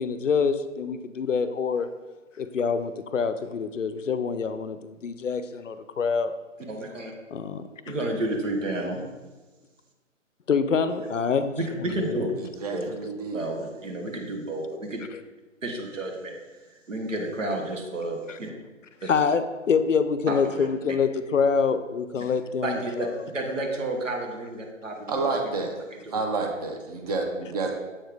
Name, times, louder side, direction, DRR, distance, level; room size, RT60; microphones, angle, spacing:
voice 1, 0.0-1.9 2.4-6.3 7.3-7.9 10.5-12.3 15.1-15.2 19.1-23.2, left 5 dB, 70° left, 12 dB, 0.6 m, -26 dB
voice 2, 6.7-7.1 7.8-9.0 11.6-12.3 12.7-12.9 13.3-15.0 15.6-16.3 16.9-18.5 19.0-19.1 20.3-20.7 22.6-23.1 23.3-25.7 26.0-26.1, right 1 dB, 70° right, 1 dB, 1.3 m, -31 dB
voice 3, 12.4-13.5 25.1-25.7 26.1-27.7, right 3 dB, 30° right, 2 dB, 0.8 m, -29 dB
7.5 x 4.4 x 3.4 m, 1.2 s
figure-of-eight pair, 140°, 39 cm